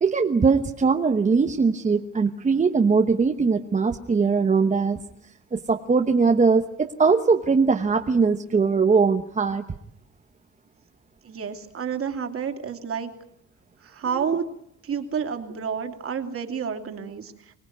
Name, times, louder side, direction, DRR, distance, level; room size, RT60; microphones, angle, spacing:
voice 1, 0.0-5.0 5.5-9.6, right 4 dB, 25° right, 4 dB, 1.1 m, -21 dB
voice 2, 11.2-13.1 13.8-14.5 14.8-17.5, right 7 dB, 45° right, 6 dB, 2.7 m, -30 dB
25.0 x 19.0 x 9.4 m, 0.73 s
cardioid pair, 150°, 31 cm